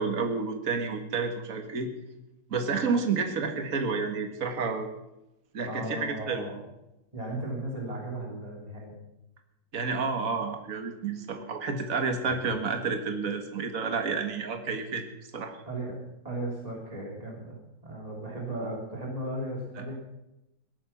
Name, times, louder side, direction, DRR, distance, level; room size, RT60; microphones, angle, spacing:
voice 1, 0.0-1.9 2.5-4.9 5.5-6.5 9.7-15.0 15.3-15.6, right 4 dB, 50° right, 5 dB, 2.0 m, -30 dB
voice 2, 5.7-6.6 7.1-8.9 12.2-12.5 15.7-16.0 16.2-19.9, right 1 dB, 20° right, -2 dB, 3.3 m, -36 dB
17.5 x 13.0 x 5.9 m, 0.90 s
omnidirectional pair, 1.9 m